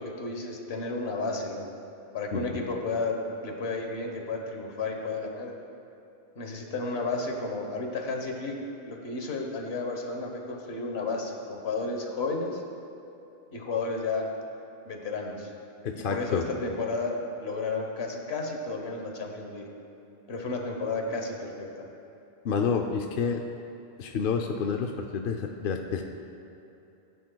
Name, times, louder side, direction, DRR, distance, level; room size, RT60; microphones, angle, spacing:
voice 1, 0.0-1.7 2.1-5.5 6.4-8.6 8.8-12.6 13.5-14.3 14.8-15.5 16.0-19.7 20.3-21.9, left 3 dB, 80° left, 2 dB, 1.4 m, -32 dB
voice 2, 2.3-2.6 15.8-16.4 22.4-23.4 24.0-26.0, left 6 dB, 60° left, 3 dB, 0.7 m, -29 dB
16.5 x 9.3 x 2.3 m, 2.9 s
omnidirectional pair, 1.1 m